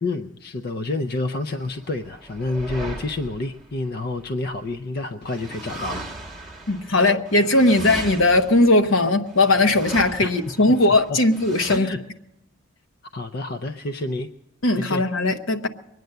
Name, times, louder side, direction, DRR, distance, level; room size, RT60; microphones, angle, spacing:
voice 1, 0.0-6.5 10.2-10.3 10.9-11.2 11.7-12.0 13.1-14.3 14.8-15.0, left 2 dB, 45° left, 0.5 m, -29 dB
sound 1, 1.6-4.7 5.2-11.8, right 2 dB, ahead, 1.4 m, -37 dB
voice 2, 6.7-11.9 14.6-15.7, left 2 dB, 65° left, 1.0 m, -19 dB
22.5 x 9.3 x 6.7 m
head